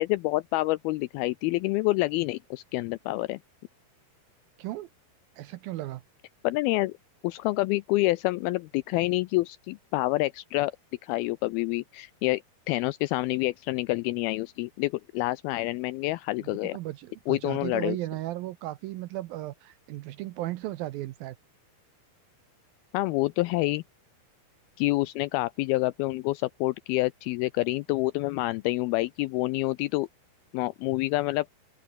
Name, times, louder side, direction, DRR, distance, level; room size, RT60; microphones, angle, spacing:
voice 1, 0.0-3.4 6.4-6.9 7.2-10.7 11.0-12.4 12.7-16.8 17.3-18.0 22.9-23.8 24.8-30.1 30.5-31.5, left 20 dB, 85° left, 2.2 m, -27 dB
voice 2, 4.6-4.9 5.4-6.0 16.4-21.4, right 16 dB, 75° right, 2.3 m, -35 dB
open air
omnidirectional pair, 4.8 m